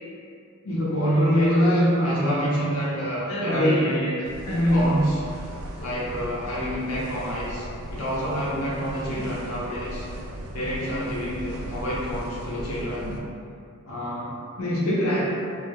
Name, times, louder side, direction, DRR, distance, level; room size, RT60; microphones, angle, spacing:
voice 1, 0.6-5.2 5.8-10.1 10.5-13.2 13.9-15.2, equal, 80° left, -6 dB, 0.7 m, -25 dB
sound 1, 4.2-13.2, right 1 dB, 85° right, 0.3 m, -38 dB
2.1 x 2.1 x 2.8 m, 2.4 s
head